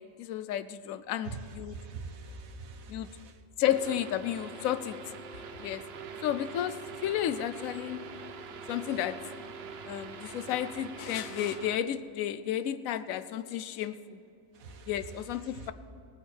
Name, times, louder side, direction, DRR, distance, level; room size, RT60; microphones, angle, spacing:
voice 1, 0.2-1.8 2.9-3.1 3.6-5.0 5.6-5.8 6.2-8.1 8.7-9.2 9.9-14.2 14.9-15.7, left 11 dB, 80° left, 13 dB, 1.0 m, -32 dB
voice 2, 1.7-3.3 14.6-14.9 15.6-15.7, right 4 dB, 85° right, 5 dB, 1.6 m, -43 dB
sound 1, 3.6-11.8, right 5 dB, 55° right, 0.9 m, -44 dB
18.5 x 9.3 x 6.3 m, 2.8 s
omnidirectional pair, 1.4 m